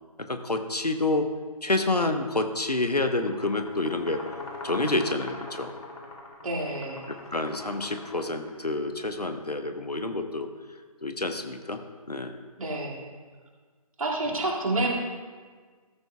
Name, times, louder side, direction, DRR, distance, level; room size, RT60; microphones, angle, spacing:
voice 1, 0.3-1.3 1.6-4.2 4.6-5.7 7.3-10.5 11.0-11.8 12.1-12.4, left 2 dB, 90° left, 7 dB, 1.0 m, -28 dB
sound 1, 3.1-8.8, left 2 dB, 65° left, 2.8 m, -42 dB
voice 2, 6.4-7.0 12.6-13.0 14.0-14.9, right 2 dB, 60° right, -2 dB, 2.3 m, -28 dB
14.0 x 13.0 x 2.3 m, 1.5 s
figure-of-eight pair, 145°, 20 cm